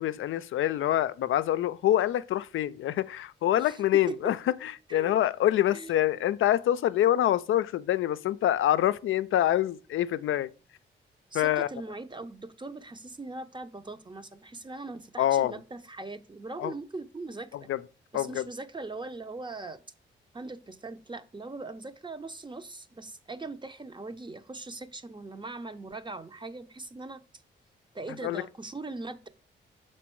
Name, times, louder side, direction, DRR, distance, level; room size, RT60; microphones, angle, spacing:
voice 1, 0.0-4.4 4.6-10.5 11.3-11.7 15.2-15.5 16.6-16.7 17.5-17.8 18.1-18.4 28.2-28.4, left 12 dB, 70° left, 0.4 m, -26 dB
voice 2, 11.3-17.7 18.1-19.8 20.3-27.2 27.9-29.3, right 2 dB, 20° right, 0.8 m, -40 dB
6.0 x 4.4 x 4.5 m
supercardioid pair, 60°, 21 cm